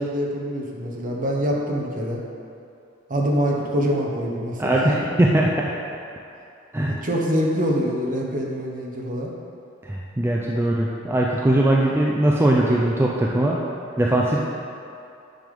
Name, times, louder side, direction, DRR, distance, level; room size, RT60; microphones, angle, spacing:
voice 1, 0.0-2.2 3.1-5.0 6.9-9.3, equal, 40° right, -1 dB, 0.9 m, -25 dB
voice 2, 4.6-5.7 6.7-7.0 9.8-13.6 14.0-14.4, right 1 dB, 10° right, -3 dB, 0.4 m, -20 dB
9.1 x 3.5 x 5.3 m, 2.6 s
head